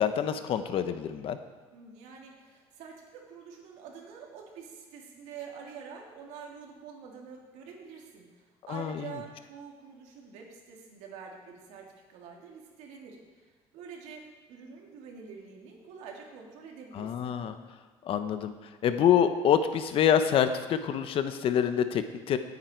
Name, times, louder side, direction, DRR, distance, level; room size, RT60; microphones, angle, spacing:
voice 1, 0.0-1.4 8.7-9.2 16.9-17.6 18.1-18.5 18.8-22.4, left 8 dB, 50° left, 9 dB, 1.0 m, -26 dB
voice 2, 1.7-14.2 14.5-17.3, right 6 dB, 80° right, 0 dB, 3.1 m, -46 dB
19.5 x 9.4 x 4.7 m, 1.3 s
cardioid pair, 130°, 12 cm